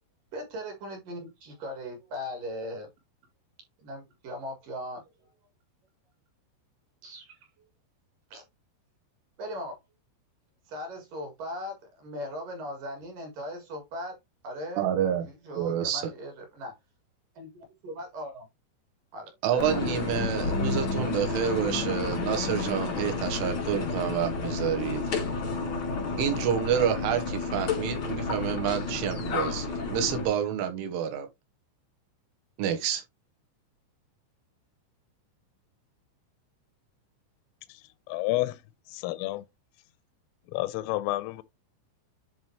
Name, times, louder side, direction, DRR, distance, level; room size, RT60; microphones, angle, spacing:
voice 1, 0.3-2.9 3.8-5.0 7.0-7.3 8.3-8.4 9.4-9.8 10.7-14.2 14.4-14.9 15.2-16.8 17.4-18.5 19.1-19.8, equal, 55° right, 2.6 m, -39 dB
voice 2, 14.8-15.3 15.5-16.1 19.4-25.2 26.2-31.3 32.6-33.0, right 9 dB, 80° right, 3.5 m, -28 dB
sound 1, 19.6-30.3, left 3 dB, 60° left, 1.2 m, -31 dB
voice 3, 38.1-38.6 38.9-39.4 40.5-41.4, left 18 dB, 90° left, 3.3 m, -30 dB
10.5 x 3.7 x 3.1 m
omnidirectional pair, 5.8 m